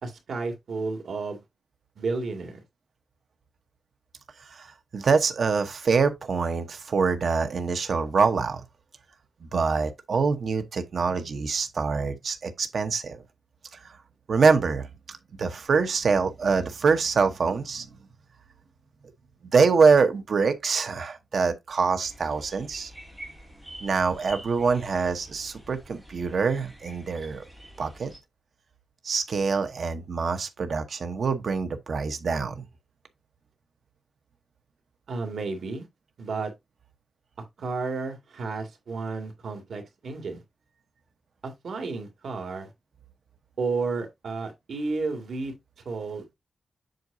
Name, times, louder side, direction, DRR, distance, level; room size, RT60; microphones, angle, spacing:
voice 1, 0.0-1.4 2.0-2.6 35.1-35.9 36.2-36.5 37.6-40.4 41.6-42.7 43.6-45.5 45.9-46.2, right 4 dB, 85° right, 2.1 m, -32 dB
voice 2, 4.5-8.6 9.5-13.2 14.3-17.9 19.5-22.9 23.8-27.4 27.8-28.1 29.0-32.6, right 5 dB, 65° right, 0.9 m, -25 dB
sound 1, 22.0-28.2, equal, 5° right, 3.0 m, -47 dB
7.8 x 5.8 x 2.6 m
wide cardioid pair, 150°, 0 cm